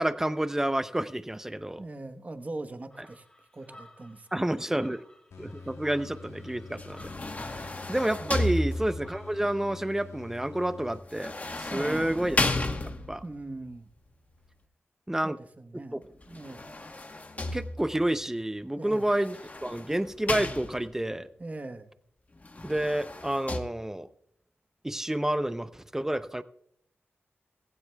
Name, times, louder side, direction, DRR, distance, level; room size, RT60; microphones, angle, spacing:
voice 1, 0.0-1.8 4.3-5.0 5.4-7.1 7.5-12.4 13.1-13.2 15.1-15.4 15.9-16.0 17.5-19.4 19.6-21.3 22.6-24.1 24.8-26.4, right 1 dB, 10° right, 13 dB, 0.6 m, -29 dB
voice 2, 1.8-3.3 3.5-4.5 8.2-8.5 11.7-12.2 13.2-13.9 15.2-16.7 18.8-19.1 21.4-21.9, right 2 dB, 30° right, 9 dB, 1.1 m, -41 dB
sound 1, 2.9-9.9, left 1 dB, 15° left, 1.7 m, -55 dB
sound 2, 5.3-11.4, left 4 dB, 85° left, 1.3 m, -47 dB
sound 3, 6.8-9.2 11.1-13.4 16.2-18.1 19.1-21.1 22.4-23.6, left 2 dB, 35° left, 1.1 m, -33 dB
16.5 x 16.0 x 2.3 m, 0.72 s
cardioid pair, 75°, 5 cm